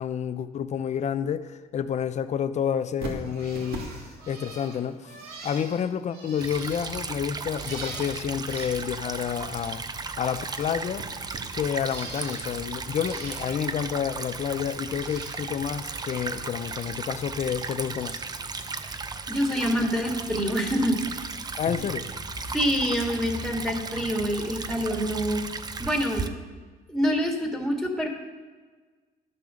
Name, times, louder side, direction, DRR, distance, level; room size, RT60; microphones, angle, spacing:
voice 1, 0.0-3.9 4.3-5.2 5.4-9.8 10.2-11.1 11.5-18.2 18.5-18.6 21.6-22.2, left 8 dB, 45° left, 12 dB, 0.6 m, -29 dB
Bird, 3.0-9.8 10.0-12.6 12.9-13.7 14.1-15.4 15.7-17.0 17.3-18.4 18.7-19.2 20.4-20.6 21.6-21.7, right 3 dB, 65° right, 2.7 m, -43 dB
Stream / Trickle dribble, 6.4-26.3, right 4 dB, 25° right, 0.7 m, -36 dB
voice 2, 19.3-21.3 22.5-25.5 25.8-26.4 26.9-28.1, equal, ahead, 1 dB, 2.0 m, -26 dB
12.0 x 6.9 x 6.4 m, 1.4 s
cardioid pair, 110°, 17 cm